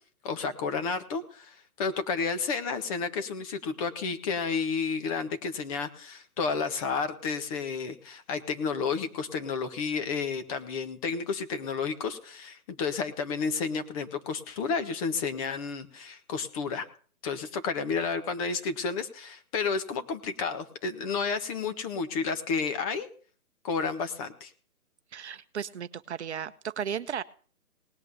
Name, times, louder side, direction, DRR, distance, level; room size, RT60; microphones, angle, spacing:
voice 1, 0.2-16.9 17.2-23.1 23.6-24.5, left 5 dB, 25° left, 9 dB, 1.5 m, -31 dB
voice 2, 25.1-27.2, right 8 dB, 50° right, 12 dB, 0.9 m, -35 dB
19.0 x 8.3 x 6.9 m, 0.43 s
hypercardioid pair, 150°, 43 cm